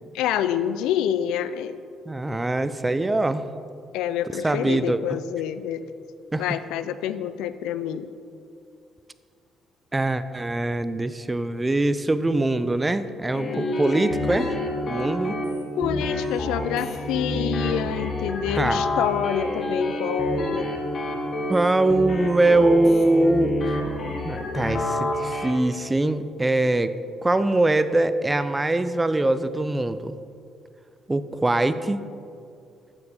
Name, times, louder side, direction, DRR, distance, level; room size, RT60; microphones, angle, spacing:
voice 1, 0.1-1.8 3.9-5.8 6.4-8.1 15.8-20.7, left 10 dB, 85° left, 12 dB, 0.3 m, -27 dB
voice 2, 2.1-3.5 4.4-5.2 6.3-6.6 9.9-14.5 14.9-15.4 18.6-18.8 21.5-23.7 24.2-26.9 27.2-30.2 31.1-32.0, right 2 dB, 15° right, 13 dB, 0.4 m, -23 dB
sound 1, 13.3-25.5, left 1 dB, 50° left, 1.3 m, -28 dB
8.6 x 6.7 x 4.3 m, 2.5 s
cardioid pair, 80°, 0 cm